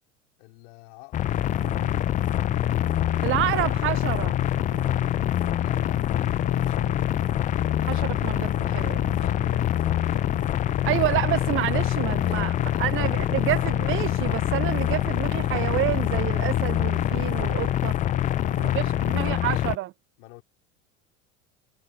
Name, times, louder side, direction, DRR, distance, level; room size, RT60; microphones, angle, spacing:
voice 1, 0.4-1.4 5.6-7.2 9.8-10.3 12.0-13.5 18.2-19.6 20.2-20.4, left 27 dB, 60° left, 4.0 m, -48 dB
sound 1, 1.1-19.8, left 12 dB, 20° left, 0.4 m, -25 dB
sound 2, 1.3-19.3, right 17 dB, 50° right, 4.4 m, -44 dB
voice 2, 3.2-4.3 7.8-9.2 10.8-12.5 12.8-18.0 18.6-19.9, right 17 dB, 35° right, 0.5 m, -28 dB
hypercardioid pair, 80°, 39 cm